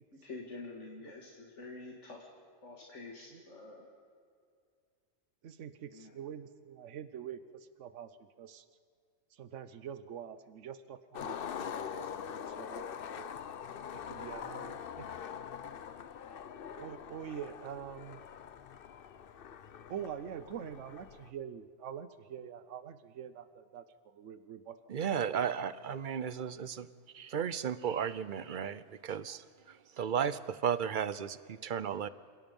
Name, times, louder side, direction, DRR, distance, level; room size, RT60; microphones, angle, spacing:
voice 1, 0.1-2.3 2.6-3.9 5.9-6.1, left 3 dB, 80° left, -1 dB, 2.4 m, -47 dB
voice 2, 5.4-8.1 8.4-8.6 9.3-11.4 11.6-13.4 13.9-15.0 16.8-18.2 19.9-25.0 25.3-25.5, right 8 dB, 85° right, 13 dB, 1.1 m, -45 dB
Skateboard, 11.1-21.3, left 8 dB, 55° left, 0.8 m, -43 dB
voice 3, 24.9-26.9 27.1-32.1, right 8 dB, 50° right, 16 dB, 0.8 m, -34 dB
29.5 x 16.5 x 5.4 m, 2.3 s
omnidirectional pair, 1.2 m